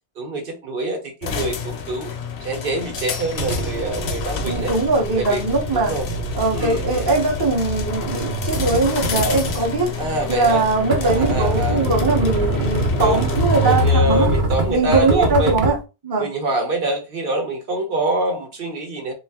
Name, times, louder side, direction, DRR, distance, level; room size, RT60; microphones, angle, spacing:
voice 1, 0.2-2.1 2.4-4.7 5.1-5.4 5.7-6.1 6.5-7.1 9.3-9.4 10.0-10.6 11.0-11.8 13.0-13.3 13.6-15.7 16.2-19.1, right 1 dB, 65° right, 0.9 m, -25 dB
sound 1, 1.2-15.6, left 6 dB, 70° left, 0.7 m, -30 dB
sound 2, 3.4-15.8, right 1 dB, 90° right, 1.0 m, -24 dB
voice 2, 4.5-5.9 6.4-9.9 10.3-14.3 14.7-15.8 16.0-16.3, right 3 dB, 30° right, 0.6 m, -21 dB
2.4 x 2.3 x 3.4 m
omnidirectional pair, 1.1 m